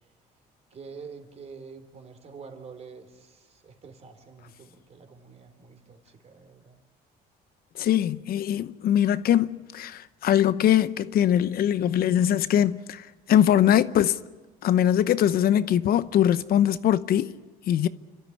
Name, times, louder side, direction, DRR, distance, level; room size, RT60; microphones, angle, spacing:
voice 1, 0.7-6.8, right 5 dB, 40° right, 3.6 m, -46 dB
voice 2, 7.8-14.2 14.6-17.3 17.7-17.9, left 10 dB, 60° left, 0.8 m, -22 dB
29.0 x 13.0 x 10.0 m
cardioid pair, 110°, 17 cm